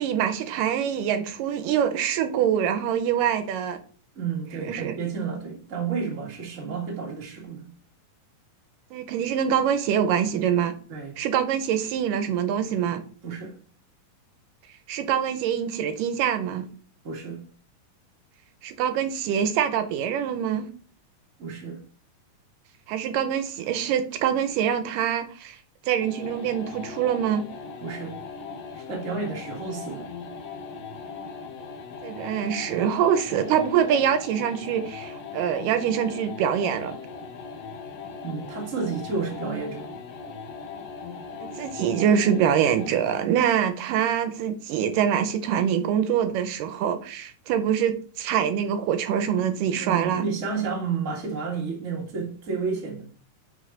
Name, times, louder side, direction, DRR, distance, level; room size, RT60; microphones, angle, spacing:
voice 1, 0.0-3.8 4.6-4.9 8.9-10.7 11.2-13.0 14.9-16.7 18.6-20.7 22.9-25.6 25.8-27.5 32.0-37.0 41.4-50.3, right 9 dB, 80° right, 2.2 m, -24 dB
voice 2, 4.1-7.7 10.9-11.1 13.2-13.5 17.0-17.4 21.4-21.8 27.8-28.2 28.8-30.1 38.2-39.9 49.7-53.0, right 5 dB, 30° right, 1.4 m, -31 dB
sound 1, 26.0-43.0, left 5 dB, 65° left, 1.7 m, -39 dB
6.6 x 5.5 x 3.8 m
omnidirectional pair, 4.0 m